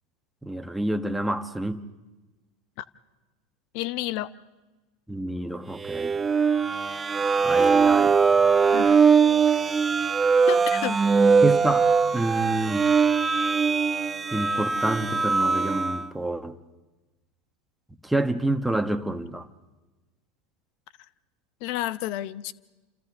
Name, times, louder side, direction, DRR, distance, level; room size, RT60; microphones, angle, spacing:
voice 1, 0.4-1.8 5.1-6.1 7.4-8.1 11.4-11.9 12.1-12.9 14.3-16.6 18.0-19.5, right 1 dB, 5° right, 1.4 m, -28 dB
voice 2, 3.7-4.3 8.7-9.0 9.5-9.6 10.5-11.0 21.6-22.5, left 15 dB, 60° left, 0.8 m, -31 dB
sound 1, 5.8-16.1, right 5 dB, 20° right, 0.6 m, -21 dB
29.5 x 28.0 x 3.7 m
hypercardioid pair, 90°, 0 cm